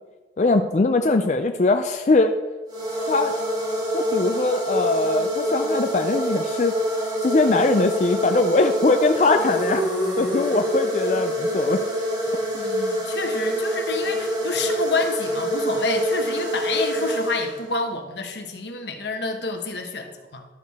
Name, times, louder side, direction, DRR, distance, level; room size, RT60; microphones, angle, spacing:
voice 1, 0.4-2.3 3.1-3.3 3.9-9.8 10.2-11.8, left 3 dB, 40° left, 6 dB, 0.4 m, -21 dB
sound 1, 2.7-17.9, equal, 25° right, 1.6 m, -26 dB
voice 2, 12.5-20.5, left 3 dB, 80° left, 4 dB, 1.1 m, -28 dB
12.0 x 6.4 x 3.5 m, 1.3 s
head